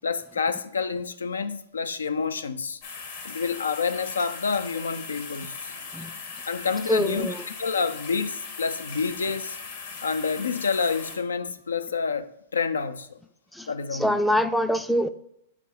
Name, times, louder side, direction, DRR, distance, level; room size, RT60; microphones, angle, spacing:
voice 1, 0.0-2.8 3.2-5.7 6.5-9.6 10.0-13.2 13.7-14.2, left 5 dB, 90° left, 0.4 m, -28 dB
sound 1, 2.8-11.2, left 5 dB, 65° left, 1.3 m, -39 dB
voice 2, 6.9-7.4 13.5-13.7 14.0-15.1, equal, ahead, 0.3 m, -24 dB
4.7 x 4.5 x 5.3 m
hypercardioid pair, 115°, 0 cm